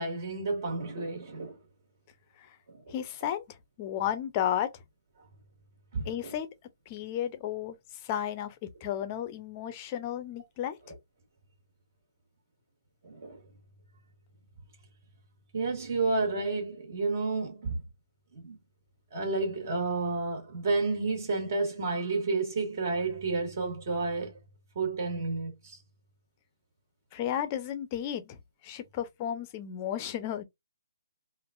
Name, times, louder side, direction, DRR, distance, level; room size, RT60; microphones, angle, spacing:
voice 1, 0.0-1.6 2.7-2.8 5.9-6.3 13.0-13.4 15.5-17.8 18.3-18.6 19.1-24.3 24.8-25.8, right 3 dB, 45° right, 1.8 m, -31 dB
voice 2, 2.9-3.4 3.8-4.7 6.1-6.5 6.9-7.8 8.0-8.5 8.8-10.8 27.1-28.4 28.6-30.4, left 10 dB, 25° left, 0.6 m, -33 dB
3.6 x 2.5 x 2.4 m
hypercardioid pair, 160°, 2 cm